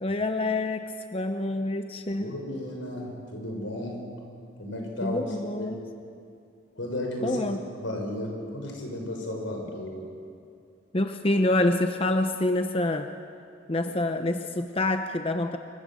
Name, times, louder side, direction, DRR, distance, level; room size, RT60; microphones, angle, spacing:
voice 1, 0.0-2.3 5.0-5.8 7.2-7.6 10.9-13.1 13.7-15.6, left 2 dB, 30° left, 6 dB, 0.8 m, -27 dB
voice 2, 2.2-4.1 4.6-5.7 6.8-7.4 7.8-10.0, left 1 dB, 85° left, 1 dB, 6.4 m, -34 dB
26.5 x 23.0 x 7.7 m, 2.5 s
head